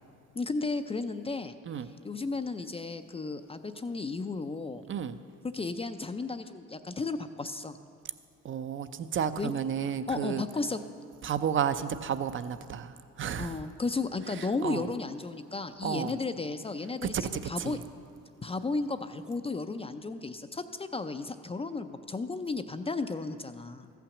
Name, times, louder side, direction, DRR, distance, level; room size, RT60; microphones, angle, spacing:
voice 1, 0.3-1.6 2.0-4.8 5.4-7.8 9.4-9.5 10.1-10.8 13.4-17.2 17.4-17.8 18.4-23.9, left 3 dB, 20° left, 9 dB, 0.4 m, -34 dB
voice 2, 4.9-5.2 8.4-10.5 11.2-13.6 14.4-14.9 15.8-16.1 17.0-17.3 17.6-17.8, right 8 dB, 40° right, 12 dB, 0.5 m, -32 dB
14.0 x 5.9 x 7.1 m, 2.4 s
cardioid pair, 90°, 30 cm